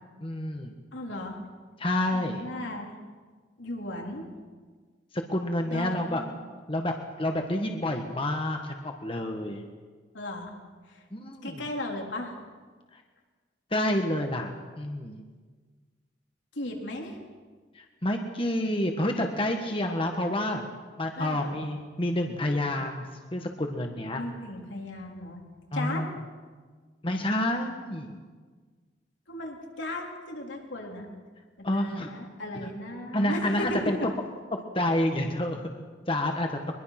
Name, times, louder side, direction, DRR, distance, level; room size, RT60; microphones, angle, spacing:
voice 1, 0.2-0.7 1.8-2.4 5.1-6.2 6.7-9.6 11.1-11.6 12.9-13.0 13.7-15.2 17.7-20.6 21.0-23.1 23.3-24.2 25.7-26.1 27.0-28.2 31.6-32.1 32.6-32.7 33.1-34.1 34.7-35.7 36.1-36.6, left 1 dB, 30° left, 3 dB, 1.5 m, -29 dB
voice 2, 0.9-1.4 2.1-2.9 3.6-4.3 5.6-6.2 10.1-10.5 10.9-11.0 11.4-12.4 16.5-17.2 21.2-21.6 24.2-25.4 25.7-26.0 29.3-31.1 31.6-33.9, left 1 dB, 80° left, 0 dB, 3.9 m, -36 dB
23.0 x 22.0 x 6.0 m, 1.5 s
head